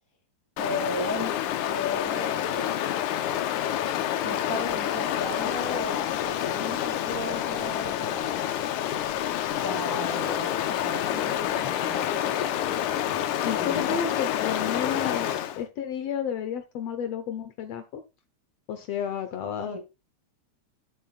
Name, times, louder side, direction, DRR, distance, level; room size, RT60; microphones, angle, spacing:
Stream, 0.6-15.6, left 11 dB, 90° left, 2.3 m, -28 dB
voice 1, 0.6-1.4 1.7-2.8 4.2-8.4 9.6-12.4 13.5-14.0 19.6-19.8, left 1 dB, 10° right, 1.2 m, -35 dB
voice 2, 13.4-18.0 18.7-19.8, left 8 dB, 70° left, 1.7 m, -32 dB
13.5 x 7.8 x 2.3 m
omnidirectional pair, 3.4 m